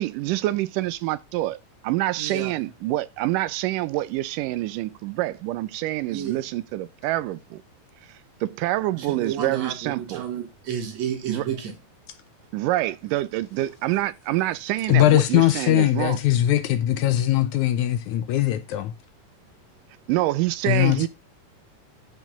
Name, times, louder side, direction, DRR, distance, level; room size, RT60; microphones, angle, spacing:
voice 1, 0.0-7.6 8.4-10.2 11.3-11.4 12.5-16.2 20.1-21.1, right 16 dB, 80° right, 2.2 m, -26 dB
voice 2, 2.2-2.7 6.1-6.4 9.0-11.7, right 8 dB, 60° right, 2.7 m, -31 dB
voice 3, 14.9-18.9 20.7-21.1, left 13 dB, 75° left, 2.0 m, -20 dB
12.0 x 5.2 x 3.7 m
omnidirectional pair, 3.8 m